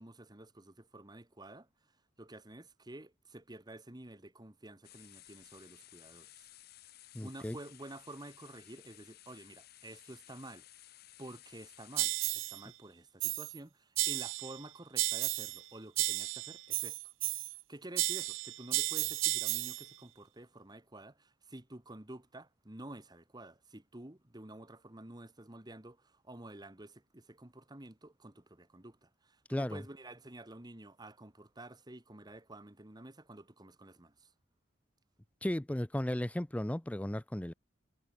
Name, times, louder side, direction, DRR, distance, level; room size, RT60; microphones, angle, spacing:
voice 1, 0.0-6.5 7.2-10.7 11.2-17.1 17.5-34.3, right 1 dB, 20° right, 1.5 m, -50 dB
sound 1, 4.8-12.1, left 14 dB, 55° left, 0.8 m, -57 dB
voice 2, 7.1-7.6 29.5-29.8 35.4-37.5, left 1 dB, 5° left, 0.5 m, -35 dB
sound 2, 12.0-12.6 13.2-13.6 14.0-14.6 15.0-15.6 16.0-17.6 18.0-19.9, right 19 dB, 85° right, 0.5 m, -33 dB
head